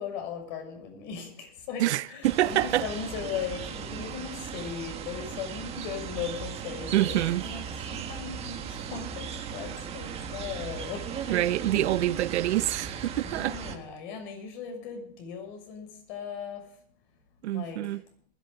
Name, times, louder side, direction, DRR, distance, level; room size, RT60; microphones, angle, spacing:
voice 1, 0.0-7.6 7.9-11.4 11.7-12.2 13.2-16.6 17.5-17.9, left 7 dB, 45° left, 6.4 m, -38 dB
voice 2, 1.8-2.9 6.9-7.4 11.3-13.6 17.4-18.0, right 14 dB, 80° right, 0.8 m, -26 dB
sound 1, 2.2-13.8, right 7 dB, 20° right, 1.6 m, -37 dB
20.0 x 14.0 x 3.8 m
supercardioid pair, 165°, 34 cm